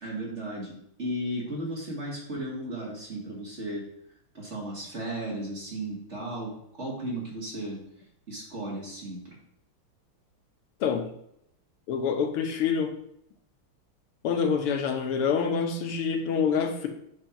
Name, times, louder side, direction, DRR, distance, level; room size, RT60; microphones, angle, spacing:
voice 1, 0.0-3.9 4.3-7.8 8.3-9.4, right 1 dB, 35° right, -3 dB, 2.0 m, -35 dB
voice 2, 10.8-11.1 11.9-13.0 14.2-16.9, left 6 dB, 85° left, 5 dB, 1.8 m, -26 dB
7.8 x 3.6 x 5.8 m, 0.74 s
omnidirectional pair, 2.4 m